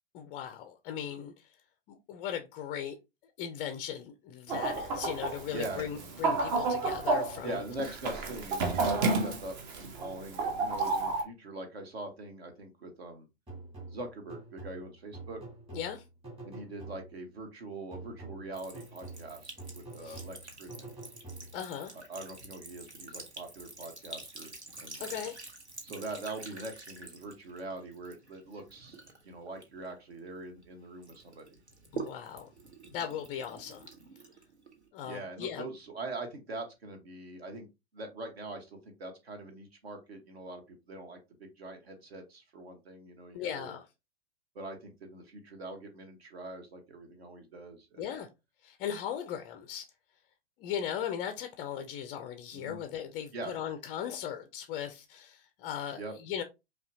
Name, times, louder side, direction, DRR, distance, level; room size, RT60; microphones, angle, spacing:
voice 1, 0.1-1.3 1.9-3.0 3.4-7.6 15.7-16.0 20.0-20.2 21.5-21.9 25.0-25.4 31.9-32.5 32.9-33.9 34.9-35.6 43.3-43.8 48.0-48.3 48.6-49.8 50.6-56.4, left 9 dB, 20° left, 0.3 m, -38 dB
Chicken rooster, 4.5-11.2, right 3 dB, 40° right, 0.9 m, -31 dB
voice 2, 5.5-5.9 7.4-13.3 13.9-15.4 16.4-21.0 21.9-25.0 25.8-29.0 29.2-31.6 35.0-37.7 37.9-43.8 44.5-48.0 52.5-52.8 53.3-53.5 55.9-56.1, right 2 dB, 65° right, 1.3 m, -43 dB
sound 1, 13.5-17.3 17.9-21.8, right 2 dB, 15° right, 1.8 m, -47 dB
Sink (filling or washing) / Trickle dribble, 18.5-30.7 31.0-34.9, right 3 dB, 85° right, 1.0 m, -47 dB
5.3 x 2.2 x 2.7 m
figure-of-eight pair, 100°, 33 cm